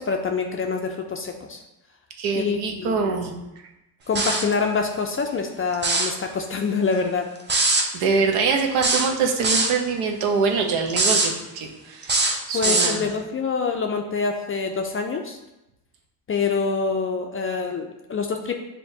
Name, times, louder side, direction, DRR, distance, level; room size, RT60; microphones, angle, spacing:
voice 1, 0.0-1.6 2.4-3.2 4.1-7.3 12.5-15.4 16.3-18.5, left 5 dB, 30° left, 4 dB, 0.4 m, -26 dB
voice 2, 2.2-3.3 7.9-12.2 12.5-13.1, right 5 dB, 75° right, 3 dB, 0.8 m, -24 dB
sound 1, 4.2-4.5 5.7-6.2 7.5-7.9 8.8-9.8 10.9-11.3 12.0-13.0, right 3 dB, 20° right, 0.6 m, -21 dB
6.7 x 2.2 x 2.7 m, 0.95 s
supercardioid pair, 75°, 50 cm